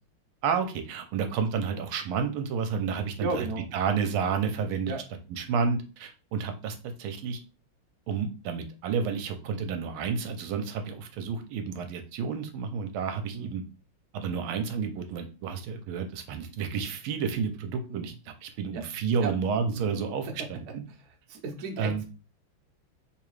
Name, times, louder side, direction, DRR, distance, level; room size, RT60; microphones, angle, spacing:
voice 1, 0.4-4.9 5.3-7.4 8.1-13.6 14.1-20.8 21.8-22.0, right 6 dB, 80° right, 6 dB, 1.4 m, -30 dB
voice 2, 3.2-3.6 4.9-5.0 13.3-13.5 17.9-18.1 18.7-18.8 19.2-19.3 19.7-19.9 21.3-22.0, right 3 dB, 60° right, 2 dB, 1.0 m, -33 dB
3.6 x 2.9 x 3.1 m, 0.33 s
omnidirectional pair, 2.3 m